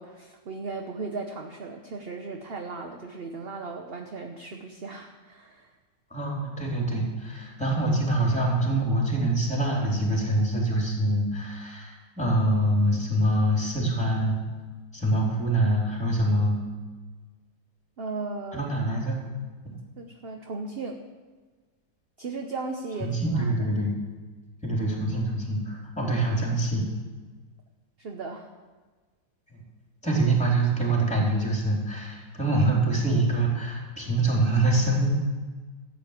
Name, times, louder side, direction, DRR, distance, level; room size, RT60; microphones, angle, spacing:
voice 1, 0.0-5.7 18.0-18.7 20.0-21.0 22.2-23.5 28.0-28.5, right 3 dB, 45° right, 3 dB, 0.9 m, -36 dB
voice 2, 6.1-14.4 14.9-16.6 18.5-19.3 19.6-19.7 23.0-23.9 24.6-26.8 29.5-29.6 30.0-35.1, right 1 dB, 5° left, -2 dB, 3.4 m, -25 dB
13.5 x 7.8 x 8.1 m, 1.4 s
omnidirectional pair, 2.0 m